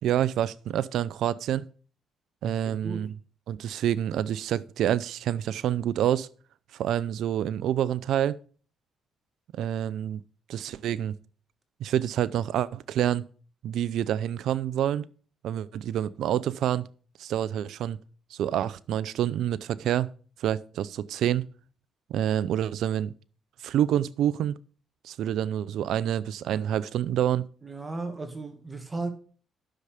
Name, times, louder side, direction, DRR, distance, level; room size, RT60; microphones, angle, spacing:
voice 1, 0.0-1.7 2.4-3.1 3.5-6.3 6.7-8.4 9.5-10.2 10.5-11.2 11.8-13.2 13.6-15.0 15.4-16.9 17.2-18.0 18.3-20.1 20.4-21.5 22.1-23.1 23.6-24.5 25.0-27.5, right 11 dB, 75° right, 0.5 m, -27 dB
voice 2, 2.4-3.1 27.6-29.1, right 3 dB, 25° right, 2.0 m, -35 dB
9.9 x 6.9 x 5.0 m
supercardioid pair, 70°, 0 cm